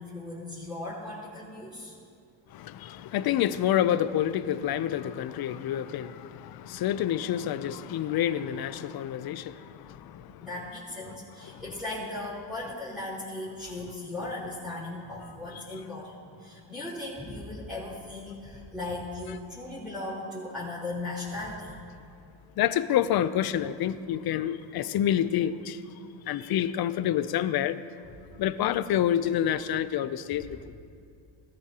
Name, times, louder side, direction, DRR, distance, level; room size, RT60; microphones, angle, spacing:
voice 1, 0.0-2.0 10.4-21.8, left 2 dB, ahead, 3.6 m, -37 dB
voice 2, 2.6-6.3 6.6-9.6 15.5-15.6 22.6-25.8 26.3-27.8 28.4-30.6, left 11 dB, 50° left, 0.6 m, -27 dB
19.0 x 13.5 x 2.9 m
cardioid pair, 120°, 48 cm